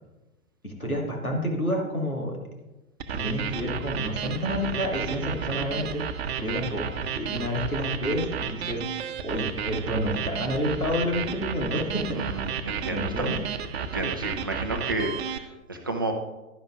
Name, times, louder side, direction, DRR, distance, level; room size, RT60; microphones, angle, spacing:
voice 1, 0.6-2.3 3.1-6.0 6.4-8.8 9.2-12.2 12.9-13.4, equal, 90° left, 0 dB, 1.9 m, -29 dB
sound 1, 3.0-15.4, right 7 dB, 50° right, 0.7 m, -32 dB
voice 2, 12.1-13.4 13.8-16.1, right 2 dB, 20° right, 3 dB, 0.3 m, -32 dB
11.0 x 10.5 x 2.5 m, 1.1 s
figure-of-eight pair, 115°, 42 cm